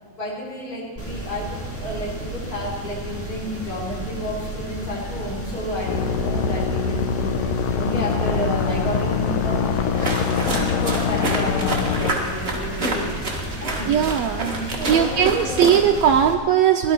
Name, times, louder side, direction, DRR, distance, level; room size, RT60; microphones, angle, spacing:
voice 1, 0.1-13.9 14.4-15.8, left 1 dB, 25° left, -7 dB, 4.8 m, -31 dB
sound 1, 1.0-16.3, right 1 dB, 10° left, 0.9 m, -33 dB
sound 2, 5.9-12.1, left 6 dB, 75° left, 1.8 m, -24 dB
sound 3, 9.9-16.1, right 2 dB, 30° right, 1.2 m, -28 dB
voice 2, 13.9-14.5 14.9-16.9, right 8 dB, 85° right, 5 dB, 1.5 m, -19 dB
17.0 x 12.0 x 4.5 m, 1.5 s
omnidirectional pair, 3.6 m